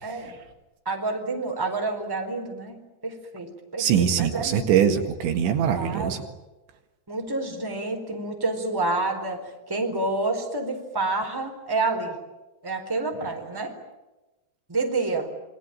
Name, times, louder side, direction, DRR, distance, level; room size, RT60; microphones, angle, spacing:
voice 1, 0.0-0.4 0.8-4.7 5.7-6.3 7.1-12.2 12.6-13.7 14.7-15.3, right 3 dB, 5° right, 3 dB, 3.7 m, -29 dB
voice 2, 3.8-6.2, right 8 dB, 75° right, 5 dB, 4.1 m, -22 dB
27.5 x 23.0 x 8.9 m, 1.1 s
omnidirectional pair, 5.4 m